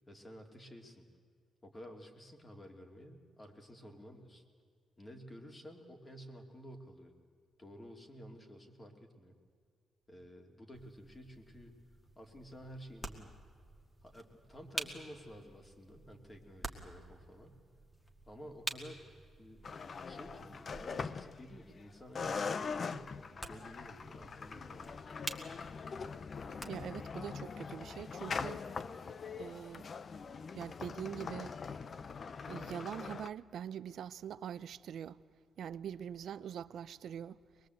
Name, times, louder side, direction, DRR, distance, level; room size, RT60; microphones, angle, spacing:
voice 1, 0.1-1.1 1.6-4.4 5.0-7.1 7.6-9.4 10.1-11.7 12.1-13.3 14.0-17.6 18.3-19.7 20.0-23.1 23.5-25.0, equal, 25° left, 2.8 m, -52 dB
sound 1, 10.7-27.1, right 1 dB, 5° left, 1.9 m, -49 dB
sound 2, 19.6-21.8 22.2-33.3, left 5 dB, 45° left, 0.7 m, -42 dB
voice 2, 26.7-28.6 29.4-29.9 30.5-31.5 32.5-35.2 35.6-37.4, right 9 dB, 70° right, 0.6 m, -43 dB
23.5 x 21.0 x 8.0 m
cardioid pair, 100°, 0 cm